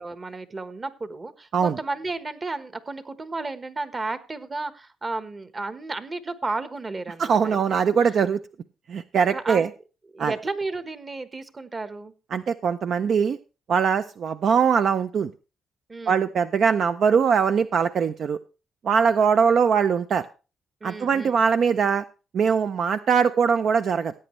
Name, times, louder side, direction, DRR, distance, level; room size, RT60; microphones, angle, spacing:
voice 1, 0.0-7.6 9.3-9.6 10.1-12.1 15.9-16.2 20.8-21.3, right 3 dB, 30° right, 12 dB, 1.2 m, -33 dB
voice 2, 7.2-8.4 8.9-9.7 10.2-10.3 12.3-13.4 13.7-15.3 16.1-18.4 18.8-20.2 20.8-22.0 22.3-24.1, right 6 dB, 60° right, 11 dB, 0.5 m, -21 dB
16.5 x 8.8 x 3.1 m, 0.32 s
cardioid pair, 90°, 0 cm